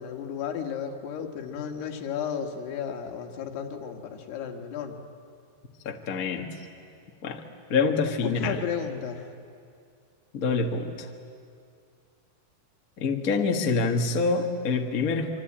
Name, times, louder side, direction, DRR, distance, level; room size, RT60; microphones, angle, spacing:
voice 1, 0.0-5.0 8.2-9.3, left 8 dB, 90° left, 3 dB, 3.7 m, -33 dB
voice 2, 5.8-6.5 7.2-7.4 7.7-8.6 10.3-11.1 13.0-15.4, left 4 dB, 60° left, 3 dB, 0.9 m, -26 dB
26.5 x 24.5 x 8.8 m, 2.3 s
omnidirectional pair, 4.5 m